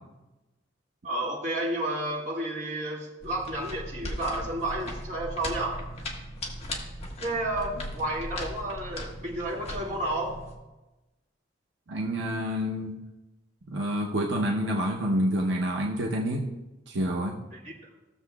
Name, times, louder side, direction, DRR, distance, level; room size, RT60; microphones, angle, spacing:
voice 1, 1.0-5.8 7.2-10.4 17.5-17.7, right 1 dB, 40° right, -5 dB, 2.1 m, -31 dB
sound 1, 3.2-10.5, left 1 dB, 35° left, 1.4 m, -38 dB
voice 2, 11.9-13.0 13.7-16.5 16.9-17.4, equal, 80° right, -1 dB, 0.9 m, -28 dB
16.5 x 6.9 x 2.4 m, 1.0 s
head